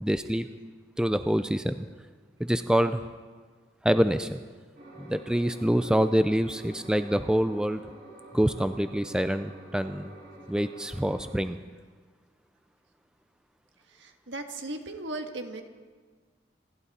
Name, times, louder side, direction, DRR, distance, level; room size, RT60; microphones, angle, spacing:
voice 1, 0.0-0.5 1.0-1.9 2.5-3.0 3.8-4.4 5.0-7.8 8.3-10.1 10.5-11.6, equal, 5° right, 10 dB, 0.4 m, -26 dB
sound 1, 4.7-11.3, right 1 dB, 55° right, 6.5 m, -48 dB
voice 2, 13.9-15.6, right 2 dB, 80° right, 5 dB, 1.5 m, -37 dB
27.5 x 11.5 x 4.2 m, 1.5 s
head